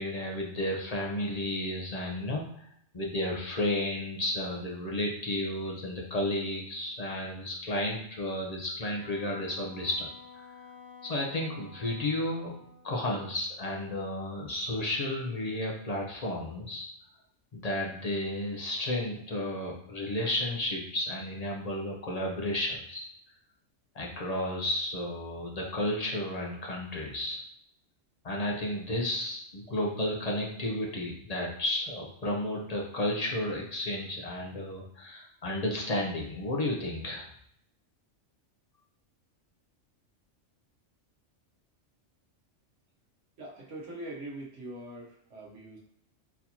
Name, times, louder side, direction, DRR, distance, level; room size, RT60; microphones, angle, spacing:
voice 1, 0.0-2.7 2.9-10.1 10.3-10.5 11.0-12.5 12.8-16.9 17.5-23.0 23.9-27.4 28.2-37.3, left 1 dB, 40° left, -1 dB, 0.6 m, -32 dB
Wind instrument woodwind instrument, 8.9-13.4, left 5 dB, 90° left, 1.4 m, -52 dB
voice 2, 43.4-45.8, right 1 dB, 75° right, -2 dB, 1.2 m, -42 dB
4.1 x 2.7 x 2.8 m, 0.70 s
omnidirectional pair, 1.3 m